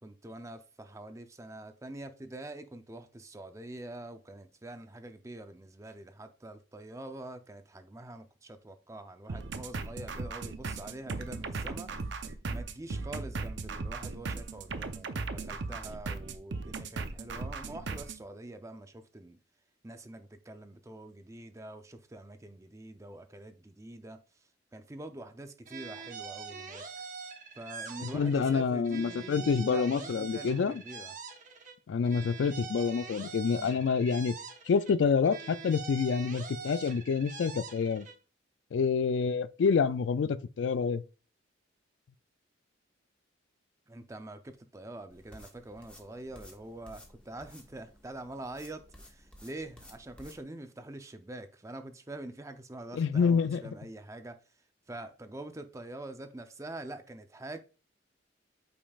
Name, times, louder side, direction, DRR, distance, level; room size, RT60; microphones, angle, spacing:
voice 1, 0.0-11.9 12.5-19.4 19.8-27.1 27.5-31.1 33.6-33.8 43.9-54.4 54.9-57.6, right 1 dB, 15° right, 0.5 m, -45 dB
sound 1, 9.3-18.2, right 3 dB, 65° right, 0.7 m, -37 dB
sound 2, 25.6-28.6 28.8-31.8 32.0-35.0 35.2-38.2, right 5 dB, 40° right, 0.9 m, -44 dB
voice 2, 28.0-30.8 31.9-34.3 34.7-38.1 38.7-41.0 52.9-53.6, left 5 dB, 70° left, 0.3 m, -27 dB
sound 3, 45.1-50.4, equal, 5° left, 1.2 m, -54 dB
8.6 x 5.2 x 2.4 m
head